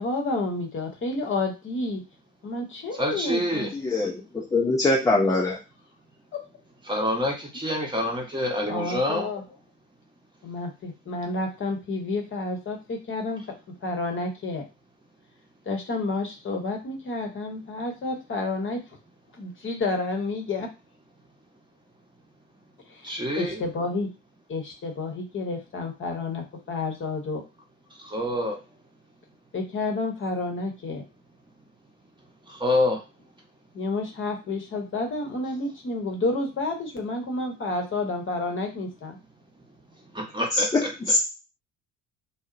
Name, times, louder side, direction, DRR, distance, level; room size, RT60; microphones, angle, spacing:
voice 1, 0.0-2.0 2.4-3.7 6.3-6.4 8.7-9.4 10.4-13.4 13.8-14.6 15.7-18.8 19.4-20.7 22.9-24.1 24.5-27.4 29.5-31.0 33.7-39.2, left 3 dB, 35° left, 2 dB, 0.9 m, -30 dB
voice 2, 3.0-3.7 6.9-9.3 23.0-23.6 28.0-28.6 32.5-33.0 40.1-40.9, left 1 dB, 15° right, 0 dB, 0.9 m, -26 dB
voice 3, 3.8-5.6 40.5-41.2, left 2 dB, 10° left, -1 dB, 0.4 m, -23 dB
2.7 x 2.0 x 2.5 m, 0.28 s
hypercardioid pair, 60°, 36 cm